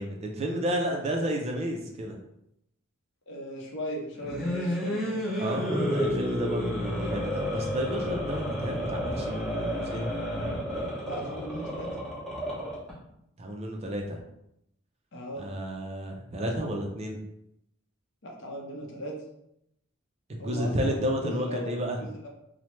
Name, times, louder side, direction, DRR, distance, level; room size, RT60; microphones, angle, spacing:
voice 1, 0.0-2.2 5.4-10.1 13.4-14.2 15.4-17.2 20.3-22.0, equal, 30° right, 1 dB, 0.3 m, -31 dB
voice 2, 3.3-5.3 11.0-11.9 15.1-15.5 18.2-19.1 20.4-21.7 22.0-22.3, equal, 55° left, -1 dB, 0.6 m, -38 dB
sound 1, 4.1-12.9, equal, ahead, 0.7 m, -31 dB
3.0 x 2.0 x 3.0 m, 0.79 s
head